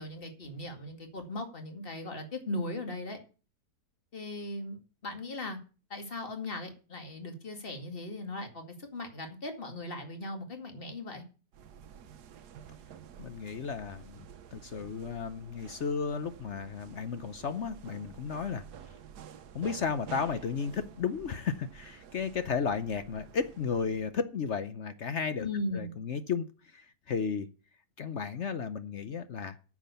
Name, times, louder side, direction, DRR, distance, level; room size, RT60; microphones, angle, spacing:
voice 1, 0.0-3.2 4.1-5.6 5.9-11.2 25.4-25.9, left 2 dB, 35° left, 2.4 m, -38 dB
sound 1, 11.5-24.1, right 8 dB, 80° right, 1.4 m, -50 dB
voice 2, 13.2-14.3 14.5-18.6 19.5-25.5 25.7-26.5 26.7-27.5 28.0-29.6, left 6 dB, 55° left, 0.9 m, -33 dB
9.5 x 7.5 x 6.8 m
omnidirectional pair, 1.7 m